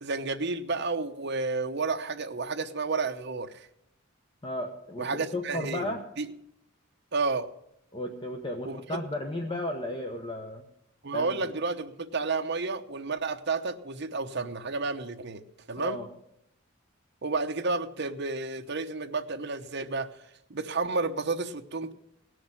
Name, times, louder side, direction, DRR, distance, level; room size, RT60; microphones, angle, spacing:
voice 1, 0.0-3.7 5.0-6.3 7.1-7.5 8.6-9.0 11.0-15.4 15.7-16.0 17.2-20.1 20.5-21.9, right 3 dB, 55° right, 6 dB, 1.0 m, -31 dB
voice 2, 4.4-6.0 7.9-10.6 11.1-11.4 15.8-16.1, left 1 dB, 25° left, 4 dB, 1.0 m, -34 dB
17.5 x 6.4 x 8.9 m, 0.78 s
head